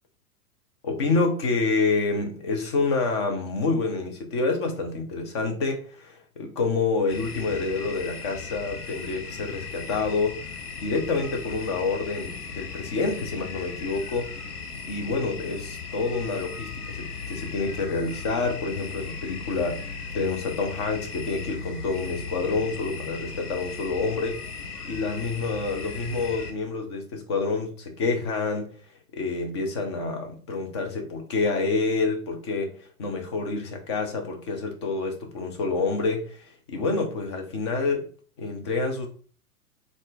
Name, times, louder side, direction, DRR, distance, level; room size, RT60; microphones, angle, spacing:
voice 1, 0.8-10.4 10.8-14.3 14.8-24.4 24.8-28.7 29.1-32.7 33.0-38.1 38.4-39.1, left 3 dB, 20° left, 3 dB, 0.3 m, -28 dB
sound 1, 7.1-26.5, left 5 dB, 75° left, 0.8 m, -37 dB
3.6 x 2.4 x 3.7 m, 0.42 s
figure-of-eight pair, 105°, 45 cm